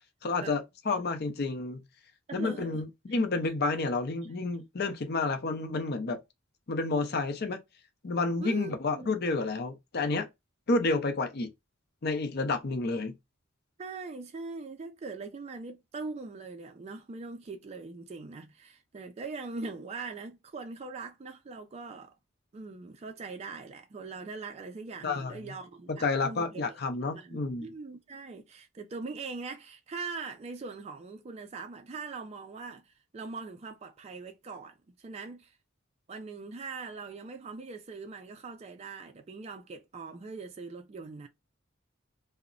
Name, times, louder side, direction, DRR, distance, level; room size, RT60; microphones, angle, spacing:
voice 1, 0.2-1.8 2.3-6.2 6.7-7.6 8.0-10.3 10.7-11.5 12.0-13.2 25.0-25.5 25.9-27.7, left 3 dB, 50° left, 0.6 m, -30 dB
voice 2, 2.3-2.8 3.1-3.2 8.4-9.1 13.8-22.2 22.5-26.8 27.1-35.6 36.1-41.3, right 4 dB, 30° right, 0.3 m, -41 dB
2.8 x 2.0 x 2.4 m
head